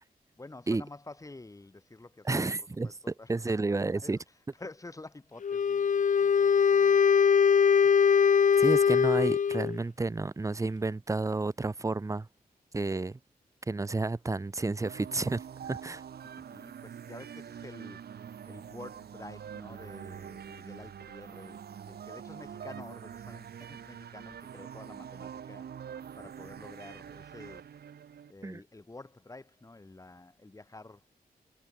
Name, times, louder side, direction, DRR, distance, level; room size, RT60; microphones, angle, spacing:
voice 1, 0.4-2.9 3.2-3.3 3.9-4.2 4.6-7.0 16.5-18.0 18.5-25.7 26.2-27.7 28.3-31.0, left 2 dB, 20° left, 3.3 m, -49 dB
voice 2, 2.2-2.9 3.3-4.2 8.6-12.3 12.7-13.2 13.7-16.0 28.4-28.6, right 3 dB, 20° right, 0.8 m, -31 dB
Wind instrument woodwind instrument, 5.4-9.8, left 7 dB, 55° left, 0.9 m, -22 dB
sound 1, 14.8-28.3, right 8 dB, 85° right, 4.4 m, -45 dB
wide cardioid pair, 100°, 16 cm